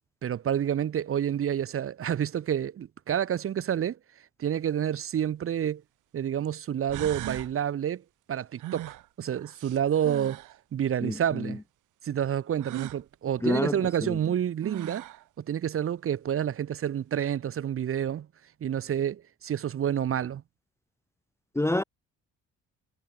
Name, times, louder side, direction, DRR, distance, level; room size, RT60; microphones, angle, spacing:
voice 1, 0.2-4.0 4.4-5.8 6.1-8.0 8.3-10.4 10.7-11.6 12.0-15.1 15.4-18.3 18.6-20.4, right 9 dB, 45° right, 0.8 m, -29 dB
sound 1, 5.4-5.5 6.5-6.6 6.9-7.5 8.6-10.6 12.6-13.0 14.3-14.4 14.6-15.2, right 16 dB, 85° right, 1.3 m, -39 dB
voice 2, 13.4-14.2 21.6-21.8, left 1 dB, 10° left, 0.7 m, -27 dB
cardioid pair, 90°, 30 cm